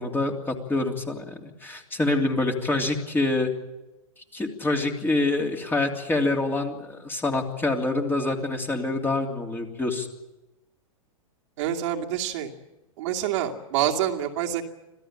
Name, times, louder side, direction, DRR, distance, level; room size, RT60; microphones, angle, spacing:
voice 1, 0.0-3.5 4.3-10.1, left 2 dB, 10° left, 2 dB, 3.0 m, -26 dB
voice 2, 11.6-12.5 13.0-14.6, right 10 dB, 55° right, 2 dB, 2.5 m, -27 dB
26.5 x 16.5 x 9.0 m, 1.0 s
hypercardioid pair, 105°, 18 cm